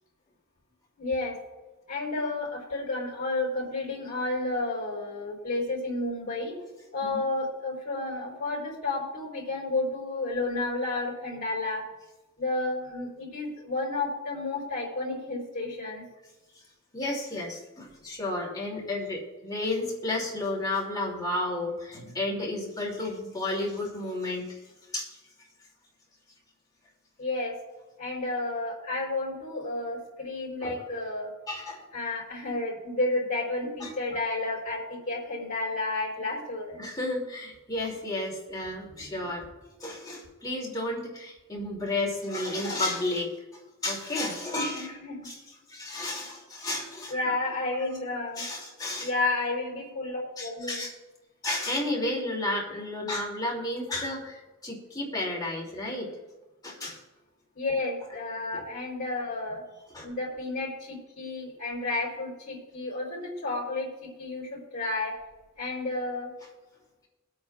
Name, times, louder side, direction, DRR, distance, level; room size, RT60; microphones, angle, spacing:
voice 1, 1.0-1.4 1.9-6.5 6.9-11.8 12.4-16.0 27.2-27.6 28.0-31.3 31.9-36.8 38.9-39.0 44.7-45.3 47.1-48.4 49.0-50.8 57.5-59.6 60.0-65.2 65.6-66.3, left 2 dB, 40° left, -7 dB, 3.8 m, -31 dB
voice 2, 16.9-24.6 24.9-25.1 30.6-30.7 31.5-31.9 33.8-33.9 36.8-39.4 39.8-43.3 43.8-44.9 45.2-45.4 45.7-47.3 48.1-49.3 50.4-50.9 51.4-56.2 56.6-57.0 58.5-58.7 59.9-60.1, left 2 dB, 20° left, -2 dB, 2.6 m, -32 dB
23.5 x 8.7 x 2.4 m, 1.1 s
head